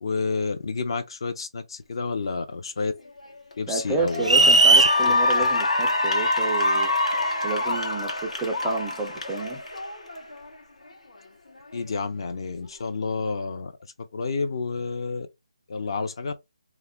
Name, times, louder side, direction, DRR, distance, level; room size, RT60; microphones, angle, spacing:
voice 1, 0.0-2.9 3.6-5.5 11.7-13.7 14.0-15.3 15.7-16.3, left 4 dB, 45° left, 0.6 m, -30 dB
Cheering / Applause, 3.2-3.5 4.0-10.5, left 2 dB, 75° left, 1.0 m, -25 dB
voice 2, 3.7-9.6, right 3 dB, 10° right, 0.3 m, -30 dB
sound 1, 4.2-5.0, right 3 dB, 75° right, 0.5 m, -15 dB
2.3 x 2.0 x 3.5 m
figure-of-eight pair, 155°, 4 cm